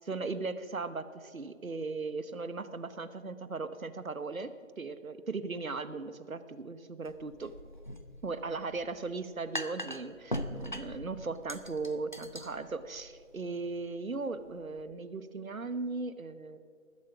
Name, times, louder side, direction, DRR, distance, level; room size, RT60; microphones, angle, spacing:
voice 1, 0.1-4.5 4.8-7.5 8.2-16.6, right 3 dB, 80° right, 13 dB, 1.0 m, -37 dB
sound 1, 7.0-14.8, equal, 35° left, 0.5 m, -42 dB
20.0 x 7.5 x 5.9 m, 2.3 s
figure-of-eight pair, 160°, 41 cm